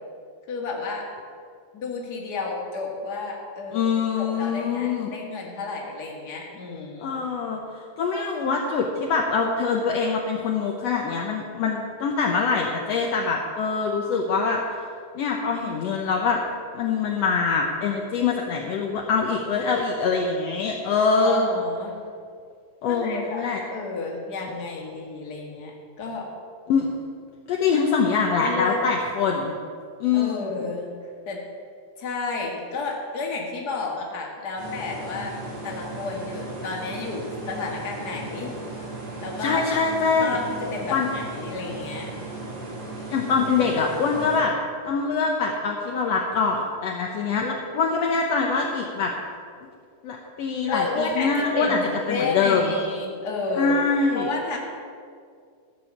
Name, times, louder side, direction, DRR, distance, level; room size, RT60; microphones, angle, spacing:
voice 1, 0.5-1.1 1.7-3.9 4.2-7.1 21.2-21.9 22.9-23.4 23.7-26.3 28.4-28.8 30.1-30.9 31.3-31.4 32.0-35.4 35.6-38.5 39.2-39.7 40.2-42.1 50.7-53.8 54.1-54.6, left 3 dB, 40° left, -1 dB, 2.0 m, -31 dB
voice 2, 3.7-5.1 7.0-14.6 15.2-16.4 16.7-21.6 22.8-23.6 26.7-27.0 27.5-29.5 30.0-30.7 39.4-40.4 40.9-41.1 43.1-44.5 44.9-49.1 50.0-51.8 52.1-52.7 53.6-54.3, left 5 dB, 70° left, 0 dB, 1.8 m, -24 dB
sound 1, 34.6-44.4, right 2 dB, 75° right, 4.0 m, -36 dB
14.0 x 6.2 x 7.2 m, 2.2 s
omnidirectional pair, 3.3 m